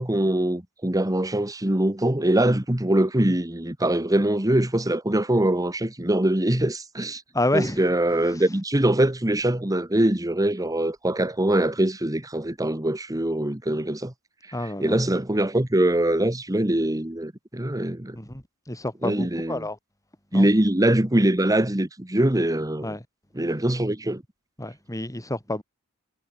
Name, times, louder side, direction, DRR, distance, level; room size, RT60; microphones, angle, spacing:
voice 1, 0.0-7.2 7.5-14.1 14.4-14.5 14.8-18.2 19.0-19.6 20.3-22.9 23.4-24.2, right 1 dB, 15° right, 1.5 m, -23 dB
voice 2, 7.3-7.8 8.3-8.4 14.5-15.0 18.1-19.8 20.3-20.5 22.8-23.0 24.6-25.6, left 1 dB, 15° left, 4.6 m, -29 dB
head